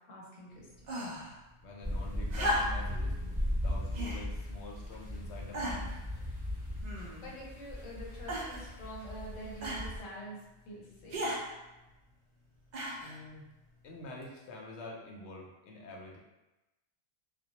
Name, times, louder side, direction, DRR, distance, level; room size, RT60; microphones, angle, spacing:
voice 1, 0.1-0.7 7.2-11.2, right 1 dB, 90° left, -4 dB, 1.1 m, -46 dB
sound 1, 0.8-1.3 2.3-3.0 3.9-4.2 5.0-5.1 5.5-6.0 6.8-7.4 8.3-8.7 9.6-9.9 11.1-11.4 12.7-13.2 14.2-14.3, equal, 70° right, 0.4 m, -35 dB
voice 2, 1.6-3.2 3.6-5.9 13.0-13.5 13.8-16.2, left 1 dB, 70° left, -1 dB, 0.8 m, -47 dB
sound 2, 1.8-10.0, left 1 dB, 5° right, 0.6 m, -37 dB
2.2 x 2.0 x 2.8 m, 1.0 s
omnidirectional pair, 1.3 m